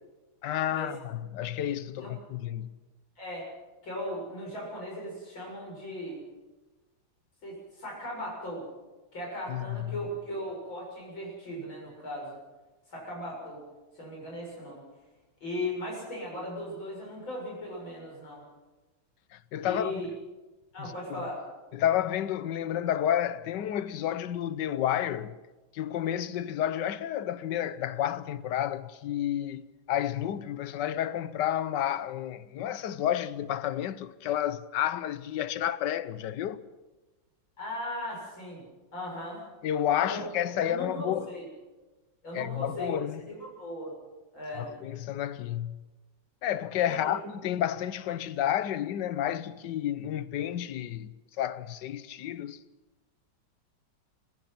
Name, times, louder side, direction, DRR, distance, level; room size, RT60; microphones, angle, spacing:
voice 1, 0.4-2.8 9.5-10.0 19.3-20.0 20.8-21.2 21.7-25.3 25.7-36.6 39.6-41.3 42.3-43.3 44.5-45.8 46.4-52.6, left 11 dB, 65° left, 1.4 m, -31 dB
voice 2, 3.2-3.5 3.8-6.2 7.4-8.6 9.1-12.4 12.9-13.6 14.0-14.8 15.4-18.4 19.6-20.1 20.7-21.4 37.6-38.6 38.9-39.5 40.1-40.2 40.6-41.5 42.2-42.9 43.3-43.9 44.3-44.7 46.9-47.2, left 1 dB, 85° left, 7.9 m, -37 dB
30.0 x 16.0 x 5.9 m
omnidirectional pair, 2.1 m